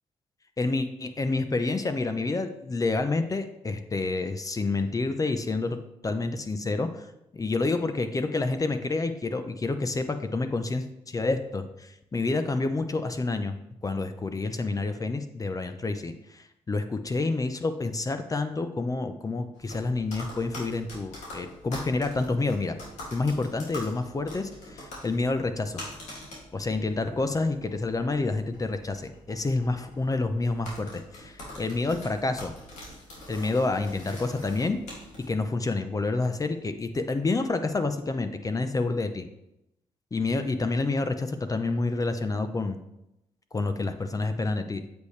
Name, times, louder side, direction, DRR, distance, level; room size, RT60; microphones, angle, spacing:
voice 1, 0.6-7.1 7.3-13.6 13.8-22.8 23.1-25.8 26.5-32.5 33.3-34.8 35.3-39.3 40.1-42.8 43.5-44.9, left 3 dB, 30° left, 8 dB, 0.8 m, -28 dB
sound 1, 19.5-35.2, left 1 dB, 85° left, 2.6 m, -44 dB
8.1 x 6.6 x 3.3 m, 0.86 s
cardioid pair, 70°, 12 cm